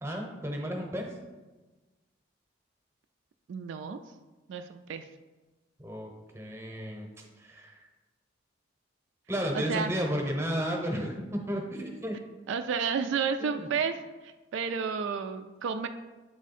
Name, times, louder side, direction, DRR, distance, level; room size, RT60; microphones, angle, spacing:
voice 1, 0.0-1.2 5.8-7.1 7.4-7.8 9.3-12.2 13.4-13.7, equal, 15° right, 1 dB, 0.8 m, -33 dB
voice 2, 3.5-4.0 4.5-5.1 9.5-9.9 12.5-13.9 14.2-15.9, right 6 dB, 75° right, 8 dB, 0.3 m, -31 dB
7.6 x 3.6 x 4.1 m, 1.2 s
head